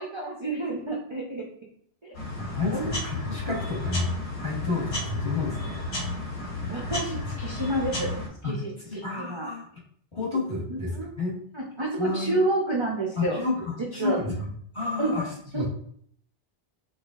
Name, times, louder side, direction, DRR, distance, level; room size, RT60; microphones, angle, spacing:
voice 1, 0.0-1.5 2.0-2.2 2.7-3.6 6.7-8.1 8.4-9.5 10.7-11.2 11.5-13.4 14.0-14.2 15.0-15.1 15.5-15.6, right 2 dB, 35° right, -3 dB, 0.5 m, -30 dB
sound 1, 2.1-8.3, left 2 dB, 90° left, 1.3 m, -32 dB
voice 2, 2.5-4.1 4.4-5.8 8.4-8.6 8.9-9.7 10.1-10.9 11.2-11.3 12.0-12.4 13.2-14.5 14.7-15.3 15.5-15.7, left 3 dB, 30° left, -6 dB, 1.2 m, -30 dB
4.8 x 2.4 x 2.4 m, 0.63 s
omnidirectional pair, 1.1 m